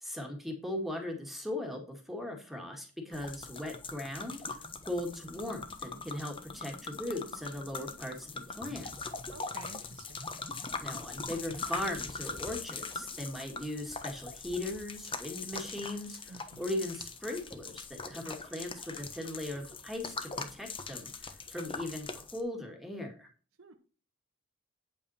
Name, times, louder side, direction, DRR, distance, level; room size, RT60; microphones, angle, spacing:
voice 1, 0.0-9.1 10.8-23.3, left 1 dB, ahead, 1 dB, 2.0 m, -39 dB
sound 1, 3.1-22.4, left 4 dB, 25° left, 1.1 m, -42 dB
voice 2, 9.3-10.2 16.3-16.7 23.6-23.7, right 3 dB, 80° right, 3 dB, 1.3 m, -51 dB
9.0 x 8.6 x 4.3 m, 0.38 s
head